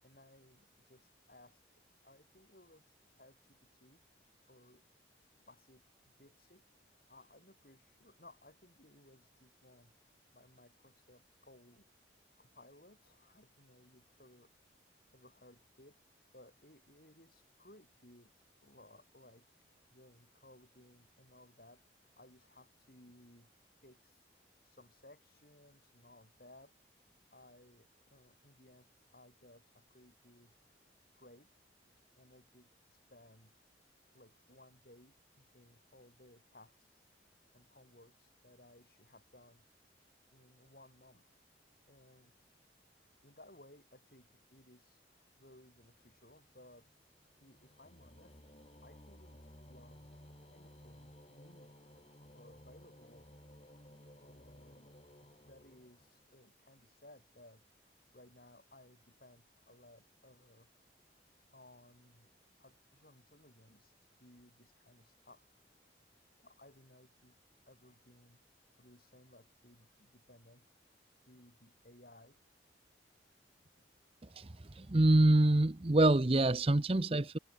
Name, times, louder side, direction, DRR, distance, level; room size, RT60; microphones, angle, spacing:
voice 1, 0.0-4.0 4.5-4.8 5.5-5.8 6.2-6.6 7.1-9.9 10.3-11.9 12.4-14.5 15.1-16.0 16.3-19.5 19.9-23.5 23.8-24.2 24.6-26.7 27.3-30.5 31.1-31.5 32.2-33.7 34.1-37.1 37.5-39.7 40.3-41.4 41.9-42.4 43.2-46.9 47.4-48.4 48.8-50.1 50.5-51.7 52.1-53.6 54.2-54.9 55.2-60.7 61.5-62.3 62.6-63.9 64.2-65.6 66.4-67.4 67.7-68.4 68.8-70.8 71.3-72.4, left 1 dB, 50° left, 7.9 m, -61 dB
sound 1, 45.6-56.5, equal, 30° left, 5.7 m, -58 dB
voice 2, 74.8-77.4, right 2 dB, 30° right, 0.7 m, -26 dB
head